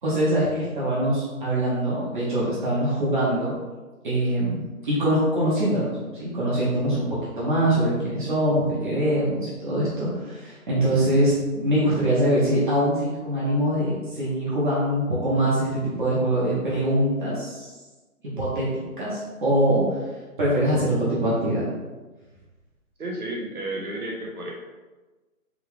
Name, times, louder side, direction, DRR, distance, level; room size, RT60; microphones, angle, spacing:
voice 1, 0.0-3.6 4.0-17.7 18.2-20.0 20.4-21.6, right 1 dB, 35° right, -8 dB, 1.1 m, -23 dB
voice 2, 23.0-24.5, right 1 dB, 80° right, -2 dB, 1.4 m, -32 dB
3.6 x 3.1 x 3.2 m, 1.2 s
figure-of-eight pair, 155°, 43 cm